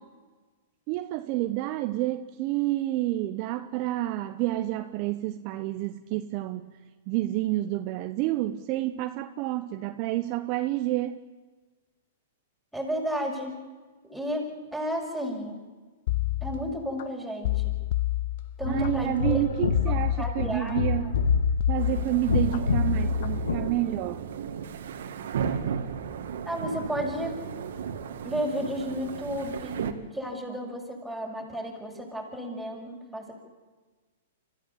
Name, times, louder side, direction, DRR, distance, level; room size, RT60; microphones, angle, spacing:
voice 1, 0.9-6.7 7.1-11.2 18.7-21.2 21.7-24.2, right 15 dB, 45° right, 9 dB, 1.0 m, -29 dB
voice 2, 12.7-13.6 14.0-15.6 16.4-17.6 18.6-19.4 19.9-20.8 26.4-27.4 28.2-29.8 30.1-33.3, equal, ahead, 0 dB, 6.6 m, -32 dB
sound 1, 16.1-17.0 17.4-18.9 19.7-20.7 21.1-22.6 23.0-23.4, left 16 dB, 55° left, 0.6 m, -29 dB
sound 2, 18.6-23.7, left 4 dB, 85° left, 1.8 m, -27 dB
sound 3, 21.8-29.9, right 7 dB, 70° right, 2.0 m, -35 dB
26.0 x 15.0 x 8.6 m, 1.3 s
hypercardioid pair, 120°, 0 cm